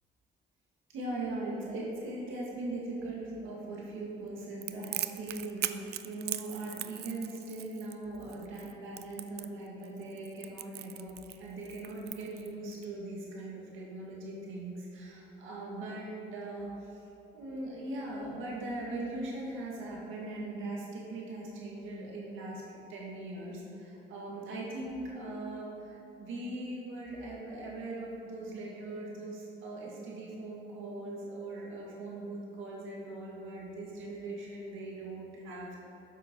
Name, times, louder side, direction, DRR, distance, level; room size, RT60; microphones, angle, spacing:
voice 1, 0.9-11.1 11.4-17.0 17.3-35.8, right 2 dB, 85° right, -4 dB, 1.8 m, -40 dB
Crackle, 4.6-12.9, right 11 dB, 55° right, 0.4 m, -40 dB
7.7 x 6.8 x 5.3 m, 3.0 s
cardioid pair, 90°, 20 cm